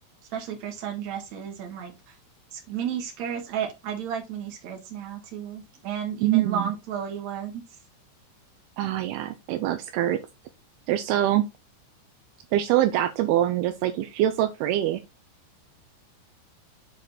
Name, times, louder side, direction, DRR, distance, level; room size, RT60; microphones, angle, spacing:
voice 1, 0.3-2.1 2.5-7.6, right 8 dB, 50° right, 2.4 m, -32 dB
voice 2, 6.2-6.7 8.8-10.2 10.9-11.5 12.5-15.0, right 13 dB, 85° right, 2.2 m, -24 dB
7.6 x 4.9 x 4.2 m
omnidirectional pair, 5.3 m